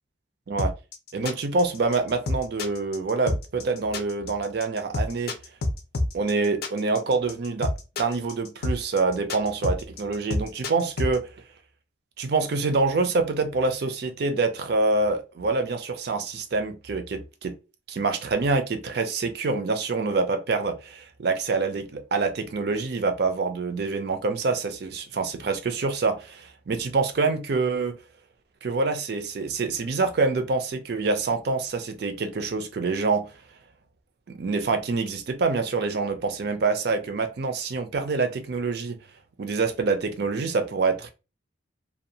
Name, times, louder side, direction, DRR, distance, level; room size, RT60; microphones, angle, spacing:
sound 1, 0.6-11.2, left 2 dB, 50° left, 0.5 m, -28 dB
voice 1, 1.1-5.3 6.1-7.7 8.0-11.3 12.2-17.5 17.9-28.0 28.6-33.3 34.3-39.0 39.4-41.1, right 3 dB, 55° right, 0.4 m, -26 dB
2.6 x 2.2 x 2.7 m
head